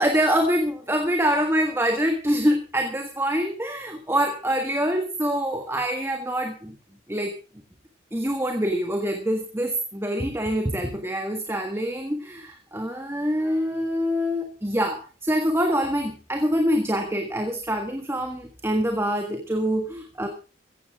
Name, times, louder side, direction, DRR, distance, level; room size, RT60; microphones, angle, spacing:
voice 1, 0.0-6.7 7.1-7.3 8.1-20.3, equal, 15° right, 5 dB, 1.5 m, -25 dB
16.0 x 15.5 x 3.6 m, 0.35 s
head